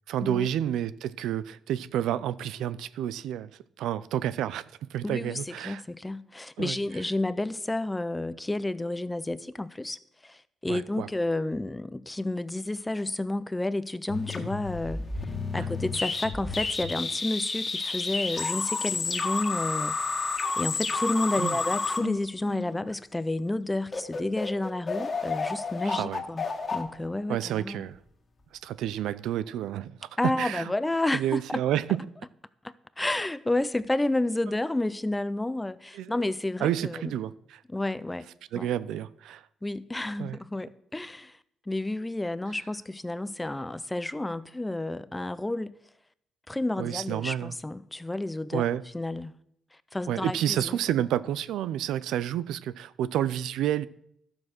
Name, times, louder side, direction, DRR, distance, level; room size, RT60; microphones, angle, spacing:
voice 1, 0.1-3.5 3.8-5.8 6.6-6.8 10.7-11.1 15.6-15.7 21.4-21.6 25.9-26.2 27.3-28.0 28.6-30.7 31.1-32.0 35.9-36.1 36.6-37.6 38.5-39.4 40.2-40.4 46.8-47.5 48.5-48.8 50.1-53.9, right 11 dB, 85° right, 0.4 m, -30 dB
voice 2, 5.0-15.0 15.5-20.0 20.6-26.4 26.7-27.9 30.2-31.6 32.6-37.1 37.7-38.3 38.5-38.7 39.6-41.3 41.7-45.7 46.5-48.6 48.9-49.4 49.9-50.8, left 2 dB, 10° left, 0.6 m, -31 dB
sound 1, 14.1-22.9 23.5-23.6 23.9-27.8, left 4 dB, 35° left, 1.7 m, -31 dB
12.0 x 7.5 x 6.1 m
cardioid pair, 90°, 0 cm